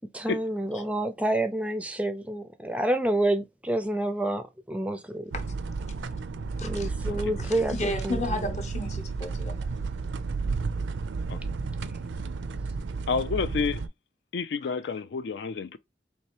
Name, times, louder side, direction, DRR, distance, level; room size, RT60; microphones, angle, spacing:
voice 1, 0.1-5.3 6.6-8.6, right 1 dB, 5° right, 0.4 m, -28 dB
car interior balloons from Steve's birthday, 5.3-13.9, right 4 dB, 85° right, 0.4 m, -32 dB
voice 2, 6.6-6.9 7.1-7.2 7.7-9.6 14.6-14.7, left 1 dB, 40° left, 0.8 m, -33 dB
voice 3, 13.1-13.8 14.3-15.8, left 5 dB, 75° left, 0.4 m, -29 dB
4.3 x 3.1 x 2.9 m
head